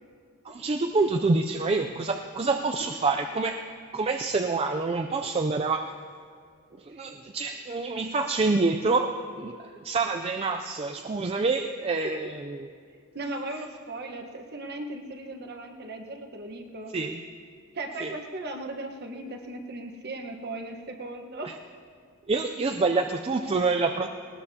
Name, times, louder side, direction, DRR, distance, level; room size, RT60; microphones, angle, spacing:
voice 1, 0.5-3.7 3.9-5.9 6.8-12.7 16.9-17.2 18.0-18.1 21.4-21.5 22.3-24.1, right 3 dB, 25° right, 4 dB, 0.4 m, -27 dB
voice 2, 13.1-16.9 17.7-21.5, right 2 dB, 50° right, 3 dB, 1.2 m, -37 dB
19.5 x 19.0 x 2.8 m, 2.1 s
head